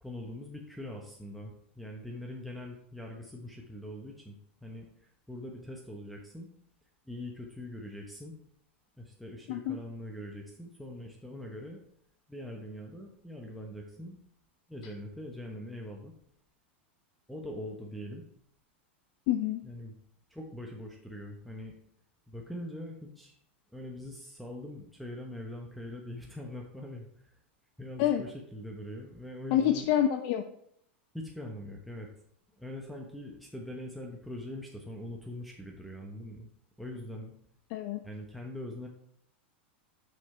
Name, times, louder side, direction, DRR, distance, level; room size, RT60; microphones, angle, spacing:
voice 1, 0.0-6.5 7.1-8.3 9.0-11.8 12.3-14.2 14.7-16.1 17.3-18.3 19.6-19.9 20.3-21.7 22.3-23.4 23.7-27.3 27.8-29.9 31.1-32.1 32.5-36.5 36.8-37.3 38.0-38.9, left 1 dB, ahead, -2 dB, 1.0 m, -42 dB
voice 2, 9.5-9.8 19.3-19.6 28.0-28.2 29.5-30.4 37.7-38.0, left 11 dB, 55° left, 7 dB, 0.6 m, -27 dB
6.2 x 5.8 x 4.3 m, 0.70 s
hypercardioid pair, 120°, 6 cm